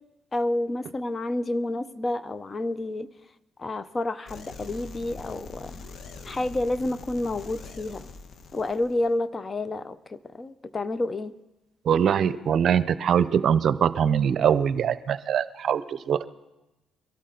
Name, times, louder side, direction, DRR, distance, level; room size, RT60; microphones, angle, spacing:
voice 1, 0.3-3.1 3.6-5.7 6.2-8.1 8.5-11.3, left 2 dB, 35° left, 15 dB, 0.7 m, -29 dB
sound 1, 4.3-9.1, left 4 dB, 60° left, 1.1 m, -43 dB
voice 2, 11.9-16.2, right 8 dB, 60° right, 14 dB, 0.6 m, -23 dB
23.0 x 12.5 x 3.9 m, 1.0 s
supercardioid pair, 70°, 0 cm